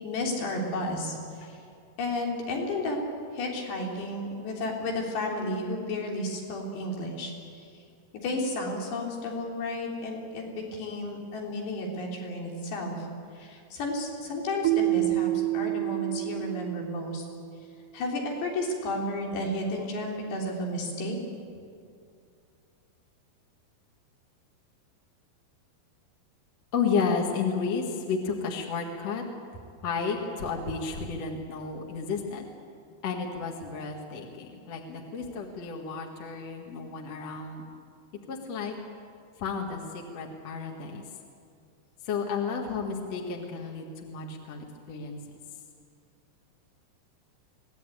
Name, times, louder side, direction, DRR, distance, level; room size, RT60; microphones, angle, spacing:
voice 1, 0.0-1.6 2.0-3.0 3.3-7.3 8.1-13.1 13.4-17.2 17.9-21.2, left 1 dB, 85° left, 0 dB, 5.5 m, -32 dB
Keyboard (musical), 14.6-17.5, right 18 dB, 80° right, 3.0 m, -28 dB
voice 2, 26.7-29.2 29.8-32.4 33.0-37.6 38.3-38.7 39.4-41.0 42.0-45.2, left 5 dB, 50° left, 0 dB, 2.3 m, -32 dB
24.0 x 18.5 x 9.2 m, 2.3 s
omnidirectional pair, 4.8 m